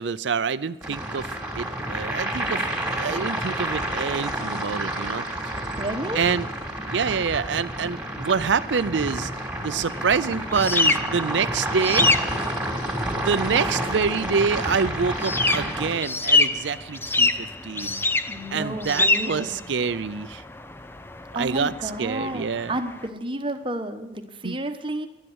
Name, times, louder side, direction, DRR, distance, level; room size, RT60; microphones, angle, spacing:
voice 1, 0.0-2.7 3.0-5.3 6.1-6.5 6.9-9.3 9.6-12.1 13.2-18.0 18.5-20.4 21.4-22.7 24.4-24.6, right 5 dB, 80° right, 14 dB, 0.5 m, -26 dB
sound 1, 0.8-15.9, right 1 dB, 5° right, 2.8 m, -29 dB
voice 2, 5.8-6.2 18.3-19.6 21.3-25.1, right 1 dB, 30° right, 8 dB, 1.2 m, -31 dB
sound 2, 9.9-23.1, left 3 dB, 10° left, 0.6 m, -26 dB
11.5 x 11.0 x 8.0 m, 1.0 s
head